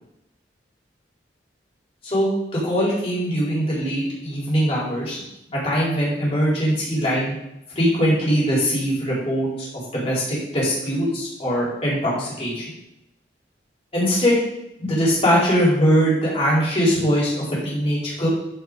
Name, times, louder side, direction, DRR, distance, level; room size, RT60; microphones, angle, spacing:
voice 1, 2.6-5.2 5.5-7.3 7.8-9.7 9.9-12.7 13.9-14.4 14.8-18.3, equal, 30° left, -6 dB, 4.0 m, -21 dB
13.0 x 5.8 x 3.9 m, 0.84 s
head